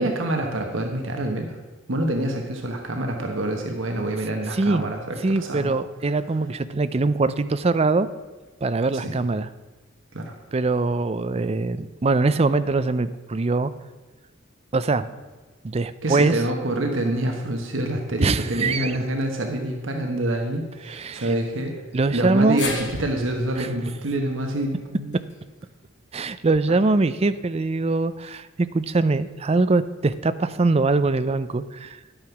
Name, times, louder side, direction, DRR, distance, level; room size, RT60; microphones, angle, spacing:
voice 1, 0.0-1.6 1.9-5.8 8.9-9.2 10.1-10.3 16.0-21.7 22.1-25.1 26.7-26.8, right 1 dB, 80° right, 3 dB, 1.3 m, -26 dB
voice 2, 4.5-4.8 5.2-8.1 8.6-9.5 10.5-13.7 14.7-15.1 15.6-16.4 18.2-18.9 20.9-21.3 21.9-22.6 23.6-23.7 26.1-32.0, right 3 dB, 30° right, 13 dB, 0.5 m, -22 dB
sound 1, 22.6-26.8 27.2-27.3 28.5-28.6, left 4 dB, 60° left, 2.2 m, -38 dB
11.5 x 8.7 x 5.9 m, 1.2 s
head